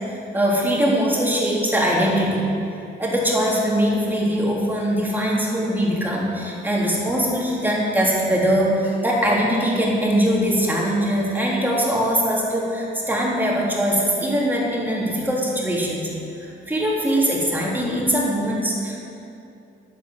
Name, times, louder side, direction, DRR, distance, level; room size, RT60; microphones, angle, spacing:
voice 1, 0.1-2.5 3.0-16.1 16.4-19.0, equal, 10° right, -4 dB, 3.5 m, -21 dB
11.5 x 8.5 x 7.9 m, 2.7 s
cardioid pair, 90°, 20 cm